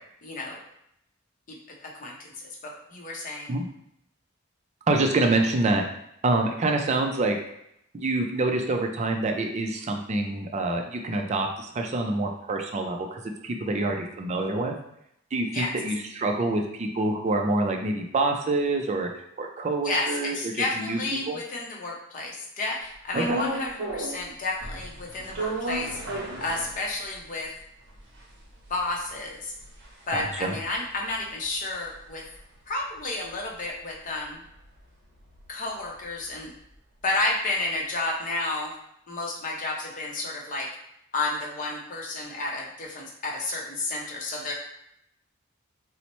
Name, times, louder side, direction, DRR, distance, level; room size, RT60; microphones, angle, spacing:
voice 1, 0.2-0.6 1.5-1.6 1.8-3.5 15.5-15.7 19.8-26.0 26.4-27.5 28.7-29.5 30.1-32.2 32.7-34.4 35.5-36.5 37.0-38.7 39.1-40.7 41.1-44.5, left 2 dB, 40° left, -1 dB, 0.6 m, -31 dB
voice 2, 4.9-5.8 6.2-7.4 7.9-14.7 15.3-19.1 19.4-21.0 21.3-21.4 23.1-23.4 30.1-30.6, right 2 dB, 35° right, 3 dB, 0.4 m, -26 dB
sound 1, 23.1-24.3 24.6-27.2 27.6-27.7 27.9-32.4 32.7-36.8, right 1 dB, 55° right, 0.7 m, -35 dB
4.0 x 2.0 x 3.0 m, 0.76 s
head